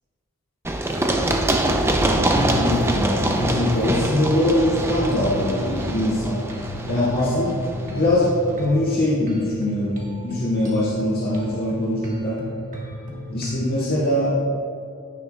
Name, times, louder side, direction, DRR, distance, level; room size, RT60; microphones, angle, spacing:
Run, 0.6-8.3, right 1 dB, 10° right, 0.4 m, -24 dB
sound 1, 0.9-13.6, equal, 35° right, 1.3 m, -34 dB
voice 1, 2.0-6.4 6.9-7.6 7.9-12.4 13.3-14.3, left 1 dB, 40° left, -10 dB, 2.0 m, -22 dB
10.5 x 10.0 x 2.2 m, 2.4 s
head